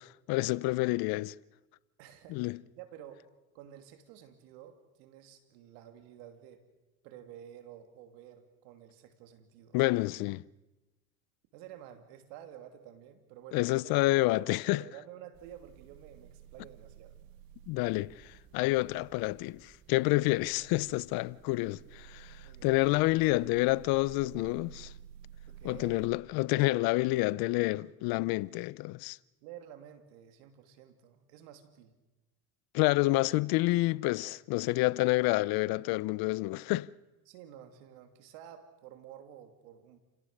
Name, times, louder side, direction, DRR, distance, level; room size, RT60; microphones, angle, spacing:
voice 1, 0.3-1.3 2.3-2.6 9.7-10.4 13.5-14.8 17.7-24.9 25.6-29.2 32.7-36.9, left 21 dB, 70° left, 0.7 m, -28 dB
voice 2, 2.0-2.4 2.8-3.3 3.5-6.6 7.0-10.0 11.5-17.2 22.4-22.7 25.5-26.0 29.4-31.9 37.3-40.0, right 10 dB, 85° right, 2.8 m, -51 dB
sound 1, 15.3-26.1, right 10 dB, 65° right, 2.0 m, -53 dB
29.5 x 17.5 x 6.6 m
supercardioid pair, 95°, 37 cm